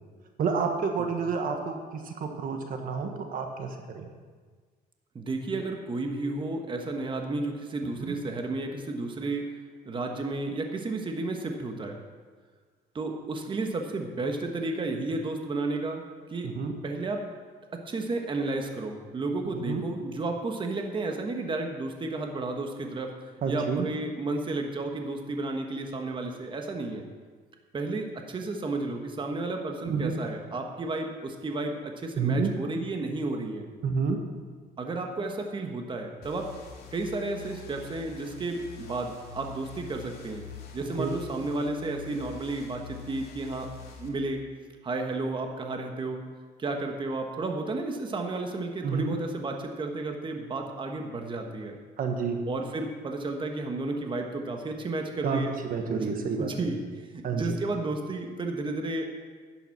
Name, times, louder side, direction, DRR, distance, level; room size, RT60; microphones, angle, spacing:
voice 1, 0.4-4.0 8.0-8.1 16.4-16.8 19.7-19.8 23.4-23.9 29.9-30.1 32.2-32.5 33.8-34.2 41.0-41.2 48.8-49.1 52.0-52.4 55.2-55.4 55.7-56.5 57.2-57.6, right 5 dB, 55° right, 4 dB, 1.4 m, -29 dB
voice 2, 5.1-9.5 9.8-12.0 12.9-16.0 16.3-16.5 16.8-17.2 17.7-23.1 23.5-27.0 27.7-33.7 34.8-36.5 36.9-40.4 40.7-43.7 44.0-44.4 44.8-46.2 46.6-51.8 52.4-55.6 55.9-56.1 56.4-59.1, right 2 dB, 30° right, 3 dB, 1.4 m, -32 dB
sound 1, 36.2-44.1, left 4 dB, 65° left, 2.4 m, -45 dB
11.0 x 9.2 x 5.9 m, 1.5 s
cardioid pair, 110°, 17 cm